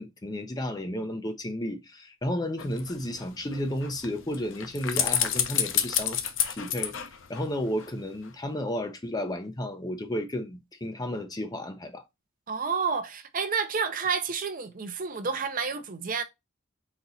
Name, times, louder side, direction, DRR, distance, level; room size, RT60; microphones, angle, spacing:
voice 1, 0.0-6.2 6.5-12.0, left 1 dB, 20° left, 0.5 m, -33 dB
sound 1, 2.6-7.9 8.2-8.3, left 9 dB, 65° left, 0.6 m, -30 dB
voice 2, 12.5-16.2, right 5 dB, 40° right, 0.6 m, -30 dB
4.0 x 2.9 x 3.9 m
head